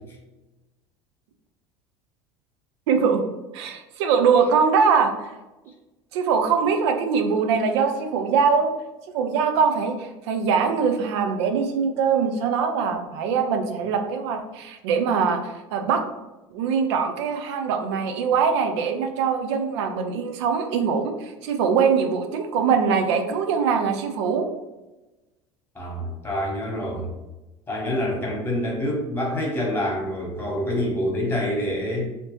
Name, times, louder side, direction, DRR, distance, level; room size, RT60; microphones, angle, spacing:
voice 1, 2.9-3.2 3.5-5.3 6.1-8.7 9.1-16.0 16.5-24.5, right 6 dB, 75° right, 6 dB, 0.5 m, -22 dB
voice 2, 25.7-27.1 27.7-32.1, left 1 dB, 15° left, -2 dB, 1.3 m, -26 dB
2.8 x 2.8 x 3.2 m, 1.1 s
hypercardioid pair, 75°, 15 cm